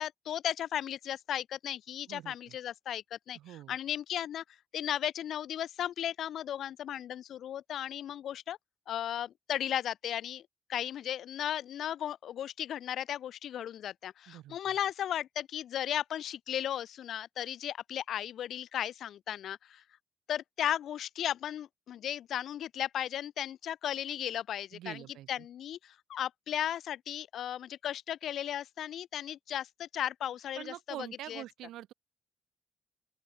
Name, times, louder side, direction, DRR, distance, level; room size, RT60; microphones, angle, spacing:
voice 1, 0.0-4.4 4.7-8.6 8.9-10.4 10.7-19.8 20.3-25.0 25.3-31.4, left 10 dB, 70° left, 1.3 m, -35 dB
voice 2, 2.1-2.6 3.3-3.8 14.3-14.7 24.7-25.5 30.6-31.9, right 14 dB, 85° right, 2.6 m, -45 dB
open air
cardioid pair, 90°, 0 cm